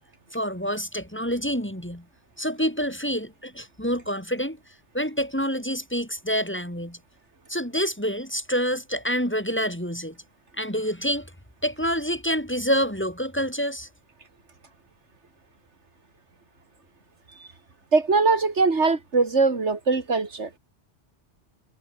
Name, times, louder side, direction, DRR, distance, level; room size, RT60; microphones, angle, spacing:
voice 1, 0.3-2.0 2.4-4.6 4.9-7.0 7.5-10.2 10.6-11.3 11.6-13.9, equal, 10° left, 4.4 m, -27 dB
voice 2, 17.9-20.5, right 4 dB, 80° right, 2.8 m, -21 dB
omnidirectional pair, 1.2 m